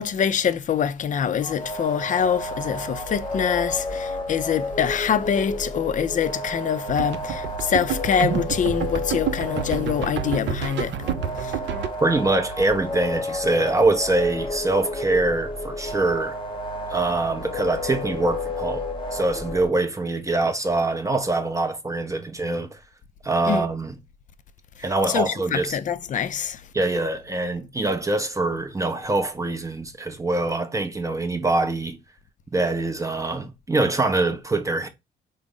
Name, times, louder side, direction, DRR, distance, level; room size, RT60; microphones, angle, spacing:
voice 1, 0.0-11.0 11.4-11.6 23.5-23.6 25.1-26.6, left 8 dB, 40° left, 0.4 m, -25 dB
sound 1, 1.4-19.7, left 2 dB, 25° left, 0.8 m, -31 dB
sound 2, 6.9-11.9, right 8 dB, 65° right, 0.5 m, -29 dB
voice 2, 12.0-16.4 16.9-22.8 23.2-23.9 24.8-25.8 26.7-32.0 32.5-34.9, right 2 dB, 15° right, 0.5 m, -24 dB
3.8 x 2.0 x 3.6 m
cardioid pair, 90°, 20 cm